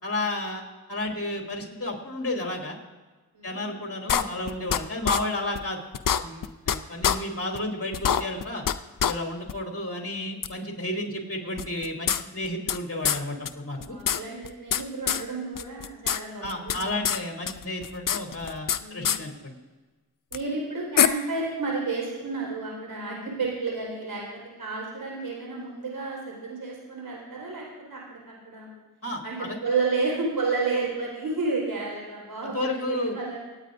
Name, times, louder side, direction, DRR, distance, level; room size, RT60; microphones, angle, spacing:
voice 1, 0.0-0.6 0.9-2.8 3.4-5.8 6.2-8.6 9.0-14.0 16.4-19.5 29.0-29.6 32.4-33.1, left 1 dB, 40° left, 1 dB, 3.0 m, -32 dB
voice 2, 3.3-3.8 13.7-17.0 18.7-19.2 20.3-24.2 24.6-28.7 29.2-33.4, right 3 dB, 80° right, -2 dB, 4.7 m, -31 dB
sound 1, 4.1-4.8 5.1-5.2 5.6-5.7 5.9-6.8 7.0-7.2 7.6-7.7 7.9-8.7 9.0-9.1 9.5-9.6 10.4-10.5 11.6-12.8 13.0-13.2 13.5-13.6 13.8-14.8 15.1-15.2 15.6-16.2 16.4-17.2 17.5-18.8 19.0-19.2 20.3-20.4 21.0-21.1, left 9 dB, 65° left, 0.6 m, -24 dB
26.5 x 8.9 x 2.6 m, 1.3 s
cardioid pair, 50°, 36 cm